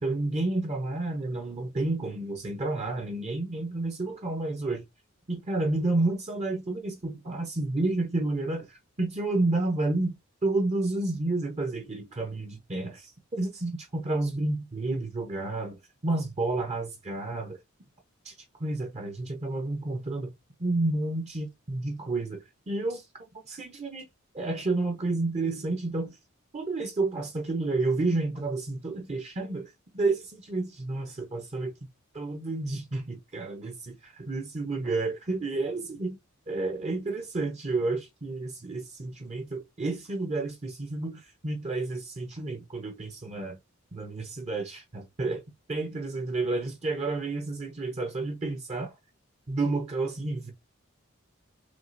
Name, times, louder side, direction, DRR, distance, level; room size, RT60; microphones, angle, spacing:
voice 1, 0.0-4.8 5.3-13.1 13.4-17.6 18.2-18.3 18.6-20.3 20.6-23.1 23.4-24.0 24.3-26.2 26.5-31.7 32.1-36.2 36.5-43.6 43.9-45.4 45.7-48.9 49.5-50.5, right 2 dB, 30° right, 0.7 m, -30 dB
6.0 x 2.4 x 2.5 m
head